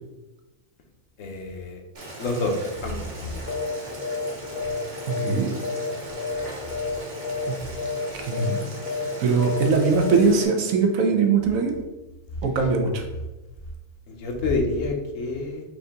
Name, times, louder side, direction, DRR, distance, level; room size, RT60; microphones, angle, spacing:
voice 1, 1.2-1.8 2.2-2.6 2.8-3.4 14.1-15.6, left 2 dB, 70° left, 2 dB, 1.1 m, -28 dB
Boiling, 1.9-10.4, right 1 dB, 50° right, 1.2 m, -39 dB
sound 1, 3.5-3.8 4.0-4.3 4.6-5.9 6.2-6.5 6.7-7.0 7.2-7.5 7.8-8.1 8.3-8.6 8.9-9.1 9.4-9.7 9.9-10.2, left 4 dB, 50° left, 0.9 m, -29 dB
voice 2, 5.0-5.5 7.5-7.6 8.1-8.6 9.2-11.7 12.4-13.0, right 4 dB, 80° right, 4 dB, 1.1 m, -21 dB
4.7 x 2.7 x 3.4 m, 1.1 s
omnidirectional pair, 1.4 m